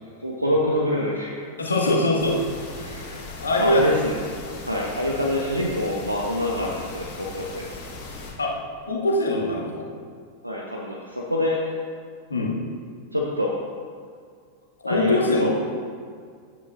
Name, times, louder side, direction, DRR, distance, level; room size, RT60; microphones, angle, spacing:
voice 1, 0.2-1.5 2.8-4.2 4.6-7.8 10.4-11.8 13.1-13.5 14.9-15.5, left 1 dB, 90° right, -2 dB, 0.9 m, -26 dB
voice 2, 1.6-2.4 3.4-3.8 6.6-6.7 8.4-8.5 8.8-9.8 12.3-12.6 14.8-15.5, left 2 dB, 75° left, -2 dB, 1.7 m, -22 dB
sound 1, 2.2-8.3, left 2 dB, 40° left, 2.6 m, -38 dB
12.0 x 9.9 x 2.5 m, 2.1 s
figure-of-eight pair, 90°, 0 cm